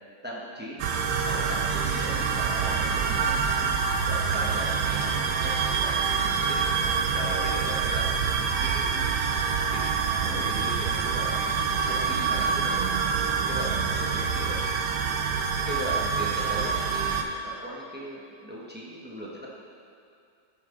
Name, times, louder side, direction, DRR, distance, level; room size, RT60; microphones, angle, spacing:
voice 1, 0.2-0.8 1.2-3.7 4.0-5.9 6.2-6.6 7.1-8.0 8.4-9.1 9.7-9.8 10.2-11.3 11.8-12.7 13.5-14.6 15.6-19.5, equal, 5° right, -5 dB, 1.0 m, -38 dB
sound 1, 0.8-17.2, right 5 dB, 70° right, 1.1 m, -26 dB
12.0 x 5.6 x 3.9 m, 2.4 s
omnidirectional pair, 1.9 m